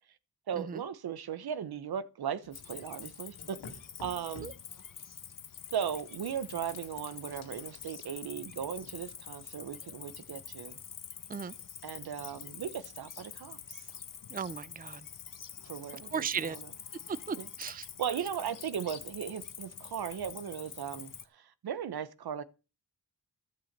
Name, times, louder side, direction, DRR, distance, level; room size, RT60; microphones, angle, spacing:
voice 1, 0.5-3.6 4.0-4.5 5.7-10.8 11.8-13.8 15.6-16.7 17.3-17.5 18.0-22.4, right 8 dB, 70° right, 1.1 m, -37 dB
sound 1, 2.4-4.7 5.7-7.8, left 3 dB, 85° left, 2.4 m, -53 dB
Cricket, 2.5-21.2, left 8 dB, 55° left, 1.1 m, -46 dB
voice 2, 14.3-15.0 16.1-16.6 17.1-17.9, right 6 dB, 25° right, 0.6 m, -36 dB
12.0 x 7.6 x 6.7 m
cardioid pair, 60°, 38 cm